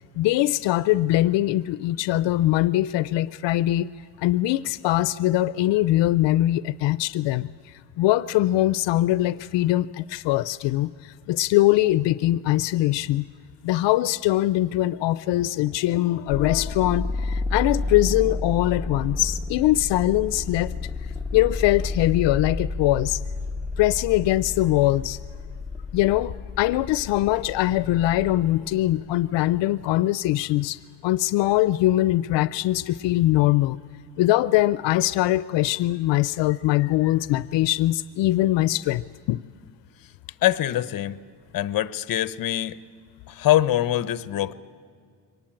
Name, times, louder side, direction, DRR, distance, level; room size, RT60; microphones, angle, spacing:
voice 1, 0.2-3.9 4.2-7.5 8.0-13.3 13.6-20.7 21.3-23.2 23.8-25.2 25.9-33.8 34.2-39.4, left 15 dB, 85° left, 16 dB, 0.5 m, -22 dB
sound 1, 16.3-28.9, left 2 dB, ahead, 0.9 m, -31 dB
voice 2, 40.4-41.1 41.5-42.8 43.3-44.5, left 13 dB, 55° left, 15 dB, 0.8 m, -23 dB
23.5 x 19.5 x 8.9 m, 2.1 s
cardioid pair, 150°, 42 cm